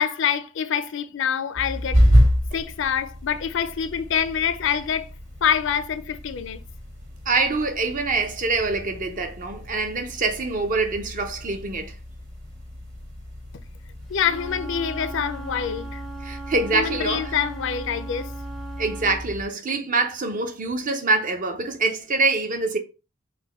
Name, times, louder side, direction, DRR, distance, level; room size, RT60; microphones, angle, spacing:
voice 1, 0.0-2.0 2.5-5.1 5.4-6.6 14.1-16.0 16.7-18.3, left 8 dB, 65° left, 0.5 m, -25 dB
sound 1, 1.5-19.5, equal, 80° right, 2.0 m, -28 dB
voice 2, 7.3-11.9 16.2-17.4 18.8-22.8, right 3 dB, 40° right, 0.7 m, -25 dB
Wind instrument woodwind instrument, 14.1-19.2, right 4 dB, ahead, 0.5 m, -39 dB
4.2 x 2.2 x 4.1 m
head